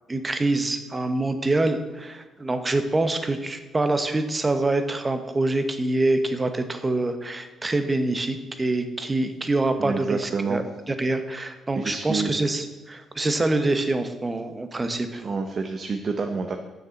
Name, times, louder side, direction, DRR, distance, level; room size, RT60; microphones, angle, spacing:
voice 1, 0.1-15.2, right 2 dB, 20° right, 8 dB, 1.0 m, -25 dB
voice 2, 9.8-10.6 11.7-12.3 15.2-16.6, right 4 dB, 45° right, 5 dB, 0.8 m, -28 dB
7.3 x 6.7 x 7.1 m, 1.2 s
cardioid pair, 90°, 0 cm